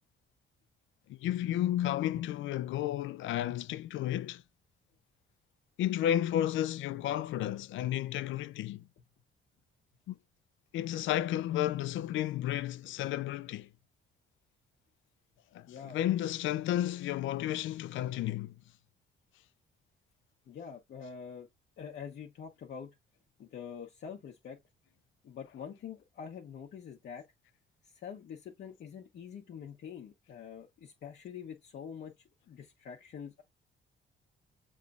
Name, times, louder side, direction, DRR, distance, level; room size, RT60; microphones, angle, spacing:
voice 1, 1.1-4.4 5.8-8.8 10.1-10.2 10.7-13.7 15.5-18.5, left 12 dB, 80° left, 0.4 m, -32 dB
voice 2, 15.7-16.0 20.5-21.5 21.8-22.9 23.4-24.6 25.2-27.2 27.8-32.1 32.5-33.4, left 7 dB, 60° left, 0.8 m, -45 dB
6.6 x 3.1 x 2.4 m
cardioid pair, 90°, 20 cm